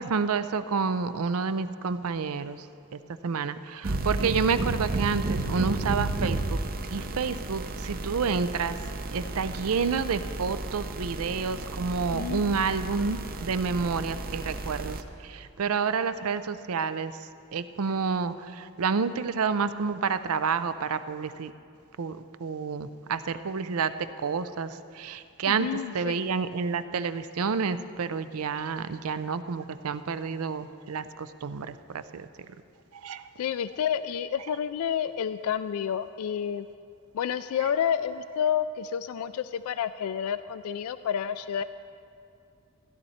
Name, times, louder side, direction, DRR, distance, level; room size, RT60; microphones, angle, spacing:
voice 1, 0.0-2.7 2.9-6.6 6.9-8.8 9.1-21.5 22.0-25.7 25.9-32.3 32.9-33.2, right 5 dB, 85° right, 12 dB, 0.5 m, -29 dB
sound 1, 3.8-15.0, right 2 dB, 40° right, 0.6 m, -32 dB
voice 2, 12.1-12.5 25.5-26.2 33.4-36.7 37.1-41.6, left 8 dB, 85° left, 13 dB, 0.3 m, -29 dB
16.0 x 11.0 x 4.3 m, 2.5 s
head